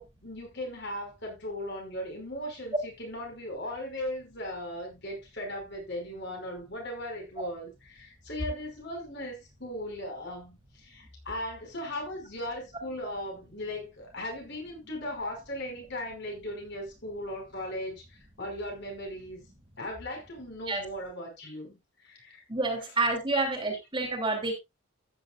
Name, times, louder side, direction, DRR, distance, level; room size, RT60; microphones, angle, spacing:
voice 1, 0.0-19.4 19.8-22.4 23.4-23.5, left 1 dB, 50° left, 5.4 m, -38 dB
voice 2, 22.5-24.5, right 2 dB, 25° right, 3.1 m, -28 dB
14.5 x 9.8 x 2.4 m
head